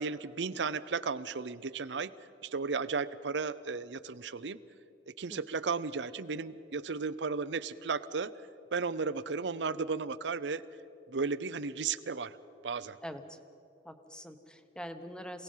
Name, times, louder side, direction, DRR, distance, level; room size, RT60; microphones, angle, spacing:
voice 1, 0.0-2.1 2.4-4.6 5.1-8.4 8.7-10.6 11.1-12.4 12.6-13.0, right 4 dB, 85° right, 15 dB, 0.7 m, -34 dB
voice 2, 13.0-13.4 13.8-15.4, equal, 5° left, 8 dB, 1.0 m, -44 dB
27.5 x 18.0 x 5.6 m, 2.8 s
head